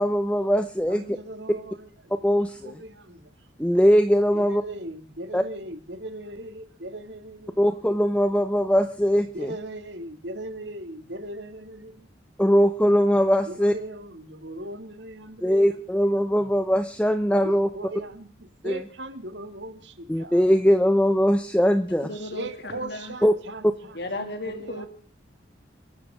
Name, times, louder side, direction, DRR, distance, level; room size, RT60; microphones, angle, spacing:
voice 1, 0.0-1.0 2.2-2.7 3.6-4.6 5.3-5.4 7.6-9.5 12.4-13.7 15.4-17.7 18.6-18.8 20.1-22.1 23.2-23.3, equal, 5° left, 0.7 m, -21 dB
voice 2, 0.9-2.1 2.6-3.3 4.3-7.6 9.3-12.1 13.5-15.8 16.3-16.5 17.4-20.4 22.1-24.9, right 1 dB, 70° right, 2.4 m, -39 dB
voice 3, 21.9-23.2 23.9-24.9, left 2 dB, 60° left, 2.5 m, -35 dB
29.0 x 11.5 x 3.7 m
head